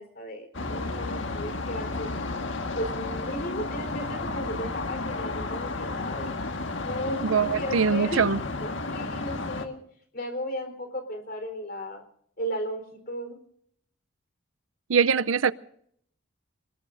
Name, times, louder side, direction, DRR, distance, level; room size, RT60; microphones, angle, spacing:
voice 1, 0.0-2.1 2.7-8.3 8.6-9.8 10.1-12.0 12.4-12.8 13.1-13.4, equal, 45° left, 6 dB, 4.0 m, -35 dB
sound 1, 0.5-9.7, left 3 dB, 70° left, 1.6 m, -32 dB
voice 2, 7.2-8.4 14.9-15.5, right 6 dB, 80° right, 16 dB, 0.6 m, -22 dB
26.0 x 20.5 x 2.6 m, 0.66 s
head